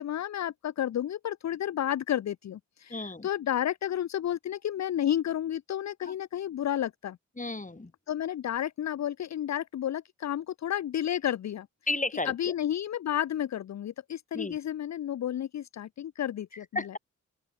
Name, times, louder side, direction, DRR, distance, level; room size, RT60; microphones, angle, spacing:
voice 1, 0.0-7.2 8.1-11.7 12.2-16.9, left 11 dB, 55° left, 0.6 m, -31 dB
voice 2, 2.9-3.3 6.1-6.2 7.4-7.9 11.9-12.5 14.3-14.6 16.8-17.0, left 2 dB, 25° left, 4.0 m, -33 dB
open air
supercardioid pair, 45°, 33 cm